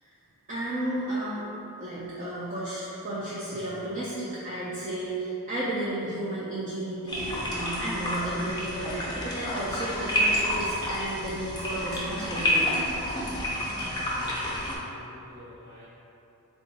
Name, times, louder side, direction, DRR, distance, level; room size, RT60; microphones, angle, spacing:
voice 1, 0.5-1.5 1.8-12.9, right 1 dB, 35° right, -8 dB, 0.4 m, -33 dB
sound 1, 7.1-14.8, left 1 dB, 20° left, 0.6 m, -29 dB
voice 2, 13.6-15.9, equal, 75° right, -13 dB, 1.2 m, -46 dB
3.7 x 2.4 x 3.9 m, 2.9 s
head